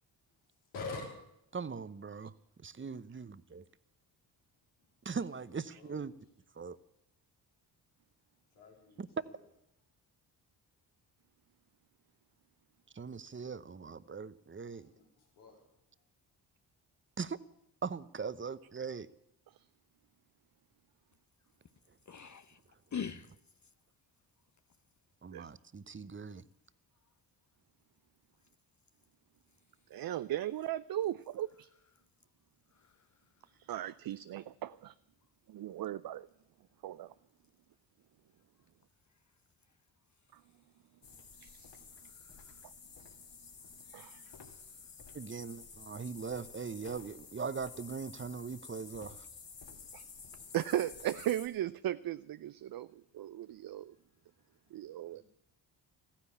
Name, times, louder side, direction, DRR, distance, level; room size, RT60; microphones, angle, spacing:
voice 1, 0.7-1.1 5.3-6.1 8.5-9.4 14.7-15.6 55.1-55.2, left 3 dB, 85° left, 3.9 m, -47 dB
voice 2, 1.5-3.6 5.0-6.1 6.5-6.8 9.0-9.1 12.9-14.9 17.2-17.4 17.8-19.1 25.2-26.4 45.1-49.3, right 5 dB, 25° right, 0.9 m, -40 dB
voice 3, 22.1-22.6 22.9-23.4 32.7-33.1 42.1-42.6 44.3-44.4, left 7 dB, 35° left, 0.8 m, -43 dB
voice 4, 29.9-31.7 33.7-34.9 35.5-36.3 36.8-37.1 41.4-41.7 43.9-44.2 49.9-50.0 50.5-53.9 54.7-55.2, right 12 dB, 45° right, 0.6 m, -37 dB
sound 1, 41.0-51.5, left 5 dB, 60° left, 3.2 m, -52 dB
15.0 x 10.0 x 8.6 m
hypercardioid pair, 45°, 50 cm